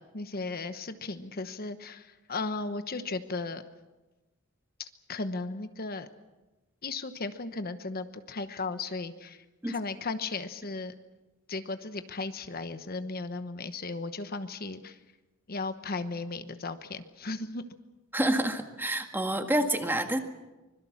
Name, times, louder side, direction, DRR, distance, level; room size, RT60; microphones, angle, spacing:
voice 1, 0.1-3.6 4.8-6.1 6.8-10.9 11.5-15.0 15.5-17.6, left 3 dB, 50° left, 10 dB, 1.1 m, -36 dB
voice 2, 18.1-20.2, right 1 dB, 10° right, 6 dB, 1.7 m, -28 dB
25.0 x 21.5 x 7.3 m, 1.1 s
head